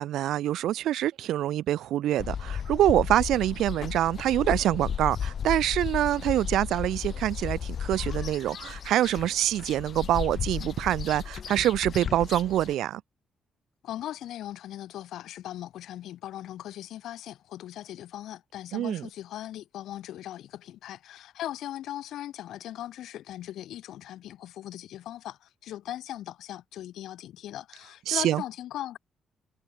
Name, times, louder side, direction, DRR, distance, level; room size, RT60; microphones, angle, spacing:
voice 1, 0.0-13.0 18.7-19.1 28.1-28.4, right 12 dB, 85° right, 0.8 m, -25 dB
sound 1, 2.2-12.7, left 8 dB, 45° left, 0.8 m, -34 dB
voice 2, 13.8-29.0, left 12 dB, 85° left, 5.4 m, -39 dB
cardioid pair, 150°, 0 cm